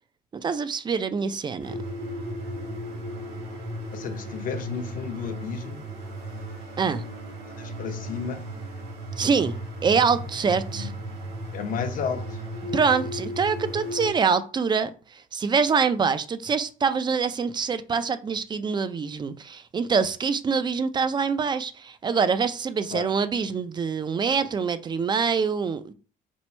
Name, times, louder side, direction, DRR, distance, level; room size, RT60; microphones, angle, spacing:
voice 1, 0.3-1.7 6.8-7.0 9.2-9.6 9.8-10.9 12.7-25.9, right 5 dB, 25° right, 0.4 m, -25 dB
sound 1, 1.6-14.1, equal, 80° right, 1.4 m, -35 dB
voice 2, 3.9-5.8 7.6-8.4 10.7-10.9 11.5-12.3 22.9-23.1, left 7 dB, 55° left, 0.8 m, -32 dB
4.4 x 2.0 x 4.3 m
cardioid pair, 110°, 17 cm